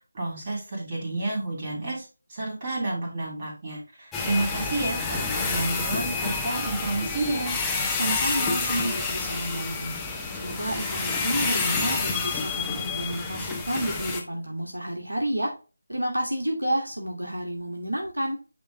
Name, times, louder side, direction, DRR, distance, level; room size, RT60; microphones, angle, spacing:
voice 1, 0.1-7.5, right 2 dB, 30° right, -5 dB, 3.4 m, -30 dB
sound 1, 4.1-14.2, left 4 dB, 5° left, 0.8 m, -29 dB
voice 2, 8.0-15.5 15.9-18.4, right 1 dB, 80° right, 1 dB, 1.7 m, -30 dB
9.3 x 3.2 x 3.6 m, 0.33 s
figure-of-eight pair, 160°, 0 cm